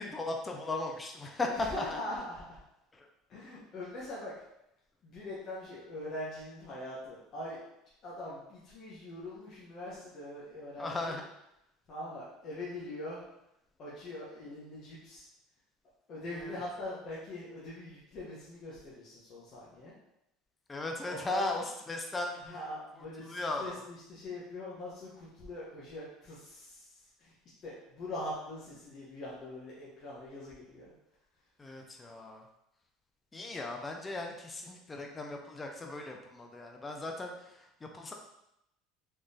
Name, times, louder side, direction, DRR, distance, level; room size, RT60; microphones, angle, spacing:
voice 1, 0.0-2.0 2.9-3.1 10.8-11.2 16.3-16.6 20.7-22.4 23.0-23.8 31.6-32.4 33.3-38.1, left 2 dB, 15° left, 2 dB, 0.4 m, -37 dB
voice 2, 1.5-2.6 3.3-4.5 5.0-7.6 8.0-11.2 11.9-13.2 13.8-15.3 16.1-19.9 21.0-21.5 22.4-27.3 27.6-30.9, left 1 dB, 40° left, -8 dB, 0.9 m, -42 dB
3.7 x 3.0 x 2.7 m, 0.84 s
cardioid pair, 145°, 0 cm